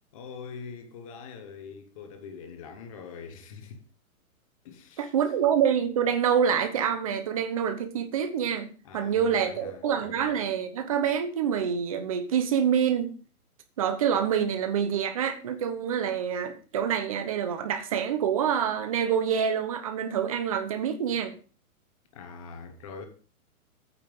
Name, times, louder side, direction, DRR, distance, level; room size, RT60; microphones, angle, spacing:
voice 1, 0.1-3.8 4.6-5.1 8.8-10.3 22.1-23.1, left 5 dB, 25° left, 1.1 m, -43 dB
voice 2, 5.0-13.1 13.8-21.4, right 8 dB, 25° right, 0.9 m, -26 dB
8.9 x 5.6 x 6.9 m
hypercardioid pair, 175°, 43 cm